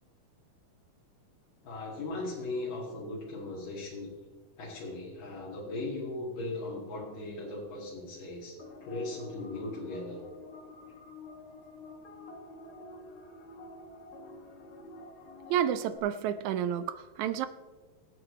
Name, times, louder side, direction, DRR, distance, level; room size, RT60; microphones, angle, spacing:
voice 1, 1.6-4.1 4.6-8.5 8.8-10.2, left 2 dB, 90° left, 4.0 m, -38 dB
sound 1, 8.6-16.0, left 2 dB, 55° left, 1.9 m, -49 dB
voice 2, 15.5-17.5, right 9 dB, 80° right, 1.7 m, -30 dB
25.5 x 8.7 x 3.2 m
omnidirectional pair, 3.7 m